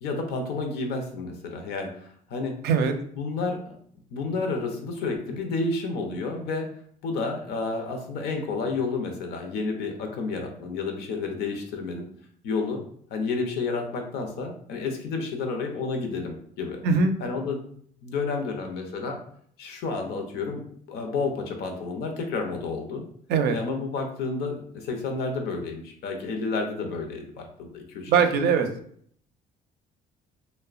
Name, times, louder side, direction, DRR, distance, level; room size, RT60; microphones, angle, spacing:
voice 1, 0.0-2.6 3.1-3.8 4.1-6.7 7.0-12.1 12.4-12.8 13.1-16.8 17.2-17.6 18.0-19.2 19.6-23.0 23.5-28.4, left 4 dB, 75° left, 4 dB, 0.6 m, -30 dB
voice 2, 16.8-17.1 23.3-23.6 28.1-28.7, right 5 dB, 70° right, 7 dB, 0.4 m, -21 dB
2.8 x 2.1 x 2.4 m, 0.63 s
cardioid pair, 110°, 17 cm